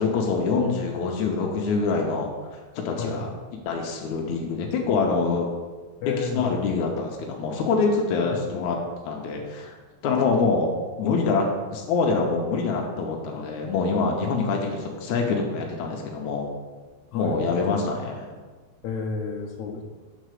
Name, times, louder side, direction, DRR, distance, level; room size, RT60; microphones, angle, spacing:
voice 1, 0.0-2.3 2.9-3.3 3.7-5.5 6.0-8.8 9.0-9.7 10.0-10.7 11.0-11.4 11.7-16.5 17.1-18.3, left 4 dB, 90° left, 1 dB, 1.6 m, -25 dB
voice 2, 6.0-6.5 8.2-8.4 17.1-17.4 18.8-19.8, left 5 dB, 75° left, 0 dB, 1.7 m, -31 dB
7.8 x 4.1 x 6.5 m, 1.4 s
omnidirectional pair, 4.6 m